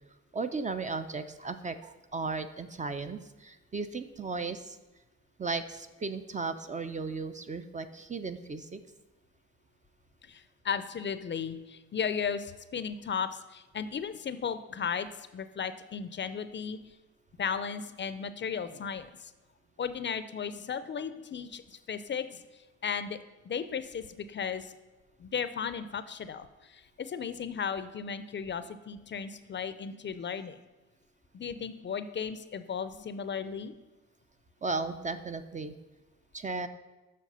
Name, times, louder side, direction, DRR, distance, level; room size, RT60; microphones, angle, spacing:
voice 1, 0.3-4.8 5.4-8.8 34.6-35.7 36.3-36.7, right 4 dB, 25° right, 9 dB, 0.5 m, -35 dB
voice 2, 10.2-15.1 15.3-16.8 17.4-19.3 19.8-23.2 23.4-24.7 25.2-30.6 31.3-33.7, left 7 dB, 40° left, 12 dB, 0.5 m, -35 dB
7.5 x 5.9 x 5.5 m, 1.1 s
cardioid pair, 90°, 30 cm